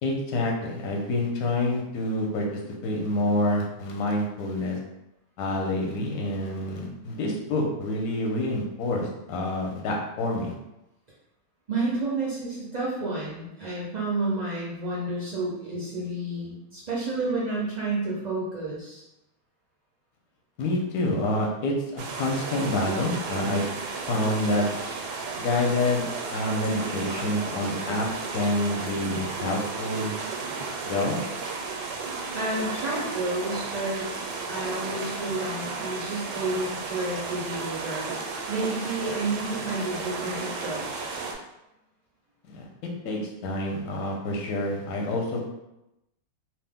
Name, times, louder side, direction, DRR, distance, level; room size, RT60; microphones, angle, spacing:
voice 1, 0.0-2.5 2.8-4.8 5.4-10.5 20.6-23.6 24.1-24.7 25.4-30.1 30.8-31.2 42.5-42.6 43.0-45.4, left 1 dB, 75° left, 0 dB, 1.1 m, -27 dB
voice 2, 11.7-19.0 32.3-34.1 34.5-38.1 38.5-41.1, right 2 dB, 70° right, -6 dB, 0.4 m, -30 dB
sound 1, 22.0-41.3, right 4 dB, 85° right, 1.1 m, -34 dB
2.8 x 2.0 x 3.4 m, 0.90 s
omnidirectional pair, 1.7 m